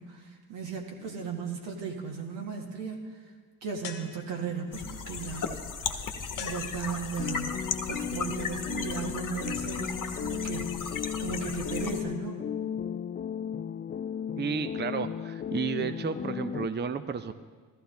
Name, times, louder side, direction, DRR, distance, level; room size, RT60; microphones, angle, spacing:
voice 1, 0.0-3.2 3.6-5.5 5.9-6.1 6.4-12.5, right 5 dB, 75° right, 0 dB, 2.0 m, -36 dB
sound 1, 3.8-4.7 6.4-7.3, left 8 dB, 80° left, 1.2 m, -43 dB
sound 2, 4.7-12.0, left 5 dB, 45° left, 1.2 m, -36 dB
sound 3, 7.2-16.7, left 8 dB, 25° left, 0.3 m, -35 dB
voice 2, 14.4-17.3, right 6 dB, 25° right, 10 dB, 0.7 m, -32 dB
14.0 x 14.0 x 3.9 m, 1.5 s
hypercardioid pair, 45°, 43 cm